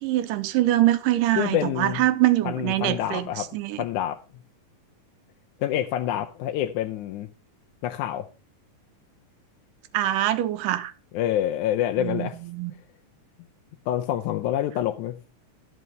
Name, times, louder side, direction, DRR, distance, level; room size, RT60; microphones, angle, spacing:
voice 1, 0.0-3.3 3.5-3.8 9.9-10.9 12.0-12.7, right 15 dB, 85° right, 2.4 m, -24 dB
voice 2, 1.4-2.0 2.5-3.5 3.8-4.2 5.6-7.3 7.8-8.3 11.1-12.4 13.9-15.2, left 12 dB, 75° left, 2.0 m, -27 dB
12.5 x 6.9 x 5.3 m
omnidirectional pair, 3.8 m